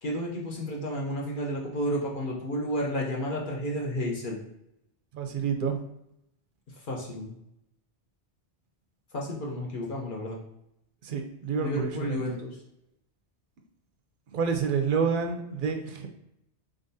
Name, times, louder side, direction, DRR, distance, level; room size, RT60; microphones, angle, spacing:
voice 1, 0.0-4.4 6.9-7.3 9.1-10.4 11.6-12.6, equal, 50° left, -2 dB, 0.8 m, -31 dB
voice 2, 5.1-5.8 11.0-12.3 14.3-16.1, right 6 dB, 60° right, 4 dB, 0.6 m, -28 dB
3.8 x 3.8 x 2.7 m, 0.81 s
omnidirectional pair, 1.1 m